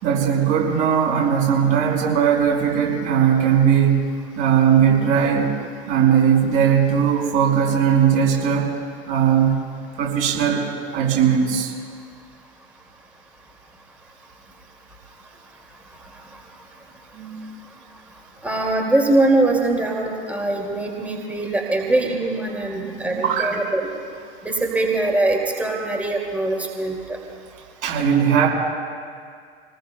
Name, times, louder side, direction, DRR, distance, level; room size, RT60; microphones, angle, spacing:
voice 1, 0.0-5.5 5.9-8.7 9.1-9.6 10.0-10.7 10.9-11.7 17.1-17.6 22.7-23.5 27.8-28.5, right 8 dB, 45° right, -2 dB, 5.2 m, -19 dB
voice 2, 18.4-23.8 24.4-27.2, right 2 dB, 5° right, 0 dB, 2.3 m, -22 dB
27.0 x 19.5 x 2.2 m, 2.1 s
figure-of-eight pair, 80°, 32 cm